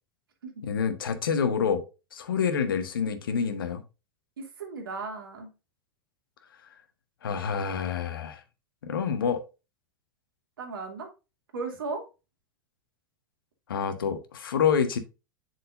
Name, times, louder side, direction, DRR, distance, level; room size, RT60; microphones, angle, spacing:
voice 1, 0.6-1.8 2.1-3.8 7.2-8.4 8.8-9.4 13.7-15.0, left 7 dB, 70° left, 1.4 m, -27 dB
voice 2, 4.4-5.5 10.6-11.1 11.5-12.0, right 4 dB, 75° right, 2.7 m, -36 dB
7.9 x 6.1 x 2.6 m
figure-of-eight pair, 95°, 12 cm